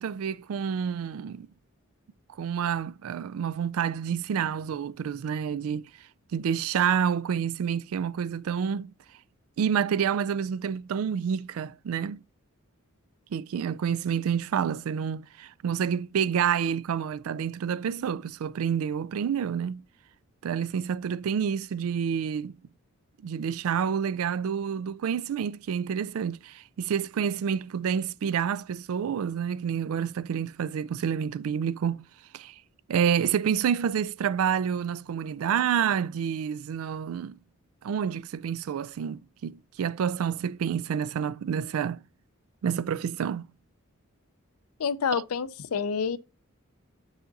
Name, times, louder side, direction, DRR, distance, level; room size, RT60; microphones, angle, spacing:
voice 1, 0.0-1.5 2.4-5.9 6.3-8.9 9.6-12.2 13.3-19.8 20.4-22.5 23.2-32.0 32.3-32.5 32.9-37.4 37.8-42.0 42.6-43.5 45.1-45.2, right 7 dB, 75° right, 0.3 m, -28 dB
voice 2, 44.8-46.2, left 6 dB, 85° left, 0.5 m, -28 dB
7.5 x 4.8 x 2.6 m
head